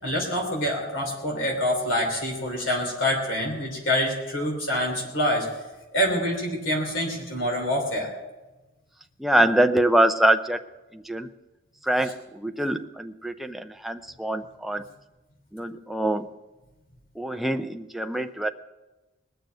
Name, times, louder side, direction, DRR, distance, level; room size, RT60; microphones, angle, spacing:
voice 1, 0.0-5.5 5.9-8.1, equal, 65° left, 0 dB, 3.3 m, -26 dB
voice 2, 9.2-10.6 10.9-11.3 11.8-14.9 15.5-16.3 17.2-18.5, right 1 dB, ahead, 7 dB, 0.5 m, -24 dB
20.5 x 6.9 x 9.1 m, 1.1 s
head